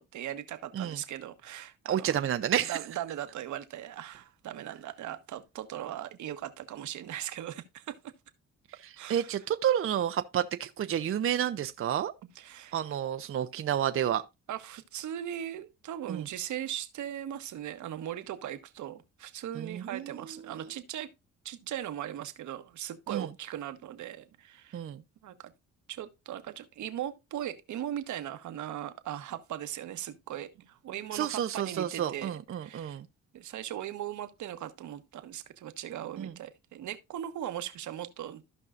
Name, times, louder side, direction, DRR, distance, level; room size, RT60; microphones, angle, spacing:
voice 1, 0.0-2.1 2.6-8.0 9.0-9.4 12.3-12.8 14.5-21.1 21.4-24.8 25.2-25.5 25.9-33.0 33.3-38.4, right 11 dB, 75° right, 1.2 m, -39 dB
voice 2, 1.9-2.8 8.8-12.1 12.7-14.2 16.1-16.3 19.5-20.2 23.1-23.3 24.7-25.0 31.1-33.1 36.2-36.3, right 10 dB, 45° right, 0.6 m, -30 dB
15.0 x 5.4 x 2.5 m
cardioid pair, 90°, 30 cm